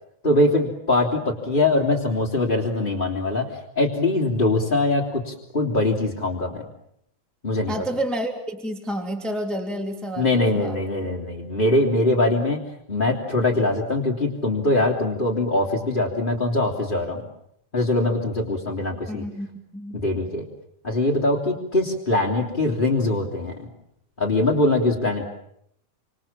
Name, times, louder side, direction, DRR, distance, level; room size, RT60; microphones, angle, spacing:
voice 1, 0.2-6.6 7.4-7.7 10.2-12.6 12.9-17.2 17.7-19.2 19.9-20.4 20.8-23.7 24.2-25.2, left 2 dB, 15° left, -4 dB, 3.0 m, -22 dB
voice 2, 7.7-10.8 19.1-19.5 19.7-20.0, right 1 dB, ahead, 4 dB, 2.7 m, -29 dB
28.0 x 27.0 x 7.4 m, 0.73 s
omnidirectional pair, 3.4 m